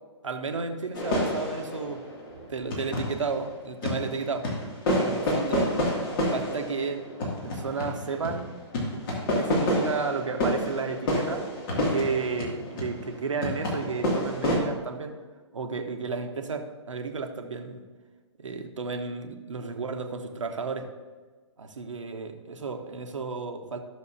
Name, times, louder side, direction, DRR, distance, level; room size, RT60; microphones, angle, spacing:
voice 1, 0.2-2.0 2.5-4.5 5.0-5.7 6.3-8.5 9.1-15.2 15.5-17.8 18.4-20.9 21.6-23.8, right 4 dB, 85° right, 4 dB, 1.1 m, -32 dB
sound 1, 0.9-3.4 3.8-14.6, left 1 dB, 45° left, 2.5 m, -29 dB
14.5 x 6.4 x 2.8 m, 1.4 s
hypercardioid pair, 130°, 16 cm